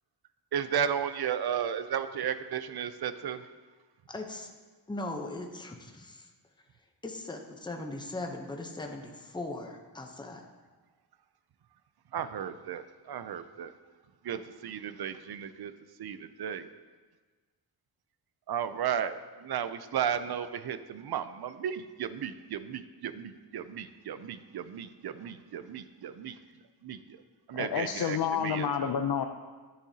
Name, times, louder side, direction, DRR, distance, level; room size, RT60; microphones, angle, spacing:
voice 1, 0.5-3.4 12.1-13.7 14.2-15.7 16.0-16.7 18.5-26.4 26.8-27.2 27.5-28.9, right 8 dB, 60° right, 12 dB, 0.5 m, -34 dB
voice 2, 4.1-4.5 4.9-6.3 7.0-10.4, left 2 dB, 10° left, 2 dB, 0.7 m, -39 dB
voice 3, 27.5-29.2, left 8 dB, 60° left, 5 dB, 0.5 m, -29 dB
10.5 x 10.0 x 2.8 m, 1.4 s
wide cardioid pair, 175°, 43 cm